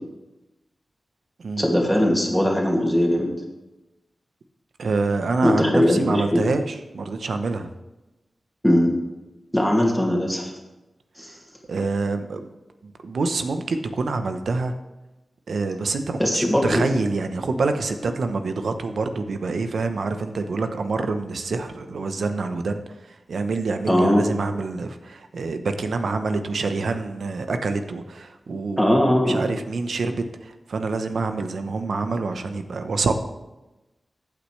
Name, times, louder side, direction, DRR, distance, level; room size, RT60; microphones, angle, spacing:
voice 1, 1.6-3.3 5.4-6.4 8.6-8.9 9.5-10.5 11.2-11.4 16.2-16.8 23.9-24.2 28.8-29.5, equal, 5° left, -1 dB, 2.4 m, -20 dB
voice 2, 4.8-7.7 11.7-12.5 12.8-14.7 15.5-33.1, right 3 dB, 80° right, 8 dB, 0.9 m, -26 dB
14.5 x 8.5 x 3.3 m, 1.0 s
wide cardioid pair, 70°, 0 cm